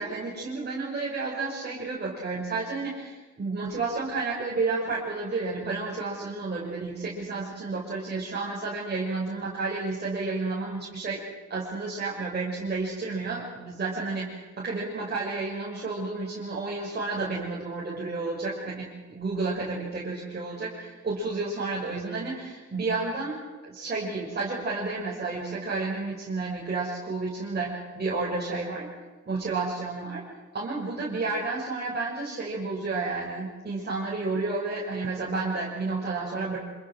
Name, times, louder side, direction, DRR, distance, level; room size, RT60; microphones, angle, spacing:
voice 1, 0.0-11.2 11.5-28.9 29.2-30.2 30.5-36.6, right 3 dB, 35° right, -5 dB, 6.1 m, -31 dB
26.5 x 22.0 x 6.3 m, 1.2 s
cardioid pair, 90°, 30 cm